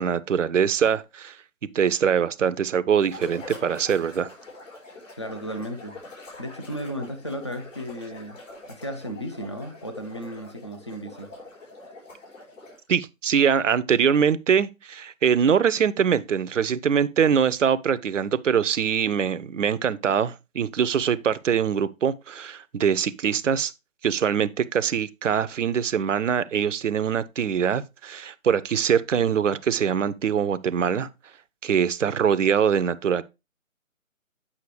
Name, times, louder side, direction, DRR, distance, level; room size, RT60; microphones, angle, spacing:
voice 1, 0.0-1.4 1.7-4.3 12.9-23.7 24.0-31.1 31.6-33.2, right 7 dB, 65° right, 0.6 m, -23 dB
sound 1, 3.0-12.9, left 2 dB, 65° left, 4.2 m, -44 dB
voice 2, 5.2-6.0 6.4-8.4 8.7-11.3, equal, 20° left, 0.5 m, -34 dB
8.4 x 5.7 x 3.2 m
figure-of-eight pair, 145°, 41 cm